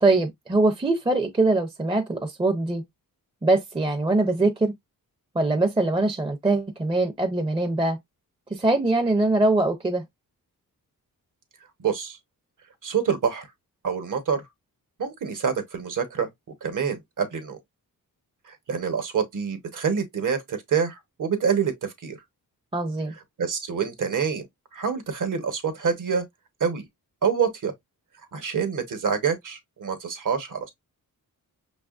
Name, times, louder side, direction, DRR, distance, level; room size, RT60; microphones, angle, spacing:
voice 1, 0.0-2.9 3.4-4.7 5.3-8.0 8.5-10.0 22.7-23.1, right 2 dB, 15° right, 0.5 m, -22 dB
voice 2, 11.8-12.2 12.8-13.5 13.8-14.4 15.0-16.3 16.6-17.6 18.5-22.2 23.4-24.4 24.7-26.2 26.6-26.9 27.2-27.7 28.3-30.7, right 6 dB, 60° right, 1.0 m, -26 dB
5.7 x 2.4 x 2.4 m
wide cardioid pair, 130°, 35 cm